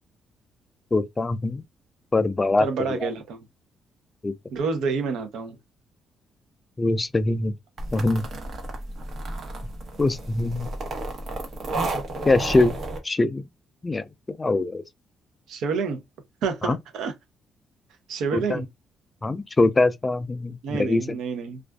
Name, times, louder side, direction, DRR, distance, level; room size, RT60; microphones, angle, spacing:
voice 1, 0.9-1.6 2.1-3.1 4.2-4.3 6.8-7.5 7.9-8.2 10.0-10.7 12.3-12.7 13.0-13.4 13.8-14.0 14.4-14.8 16.6-16.8 18.3-18.6 19.2-21.2, left 2 dB, 25° left, 0.3 m, -23 dB
voice 2, 2.6-3.4 4.5-5.6 15.5-16.0 16.4-17.1 18.1-18.7 20.6-21.6, right 5 dB, 80° right, 0.7 m, -28 dB
sound 1, 7.8-13.0, right 2 dB, 55° right, 0.9 m, -32 dB
2.4 x 2.3 x 2.2 m
cardioid pair, 90°, 0 cm